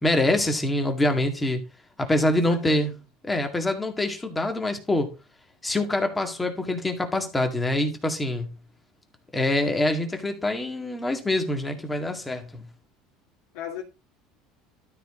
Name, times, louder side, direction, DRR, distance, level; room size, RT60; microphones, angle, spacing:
voice 1, 0.0-1.6 2.0-2.9 3.2-5.1 5.6-8.5 9.3-12.7, left 1 dB, 10° left, 2.0 m, -25 dB
voice 2, 2.1-2.9 13.5-13.8, left 9 dB, 75° left, 2.5 m, -38 dB
12.5 x 4.6 x 4.3 m
supercardioid pair, 130°, 0 cm